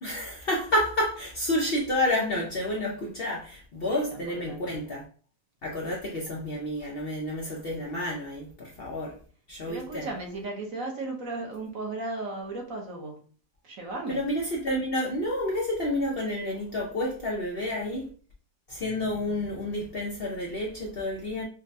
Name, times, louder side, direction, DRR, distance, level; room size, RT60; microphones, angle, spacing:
voice 1, 0.0-5.0 5.6-9.2 9.5-10.1 14.1-18.1 18.7-21.4, left 1 dB, 65° left, 0.5 m, -30 dB
voice 2, 3.8-4.6 9.6-13.2 13.6-14.2, right 2 dB, 55° right, 1.1 m, -36 dB
5.2 x 2.2 x 2.5 m
omnidirectional pair, 1.9 m